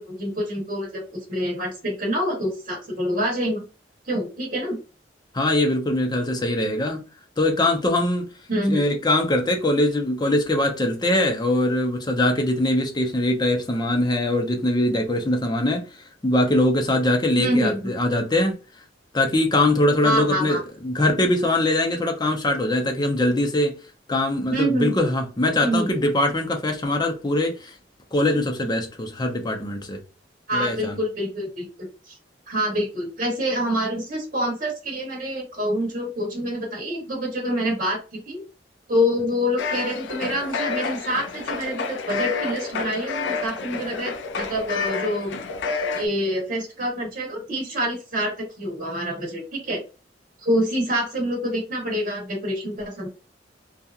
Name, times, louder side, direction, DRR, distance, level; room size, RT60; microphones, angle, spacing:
voice 1, 0.0-3.6 4.0-4.8 8.5-8.8 17.4-17.9 20.0-20.6 24.5-25.0 25.5-25.9 30.5-32.2 32.5-38.4 38.9-45.3 45.9-49.8 50.4-53.1, equal, 45° right, 1.0 m, -26 dB
voice 2, 5.3-7.0 7.4-8.3 8.7-15.8 16.2-18.5 19.1-23.8 24.1-27.7 28.1-30.0 30.5-31.0, left 1 dB, 25° left, 0.6 m, -22 dB
sound 1, 39.6-46.1, left 4 dB, 75° left, 0.4 m, -29 dB
2.8 x 2.4 x 2.3 m
head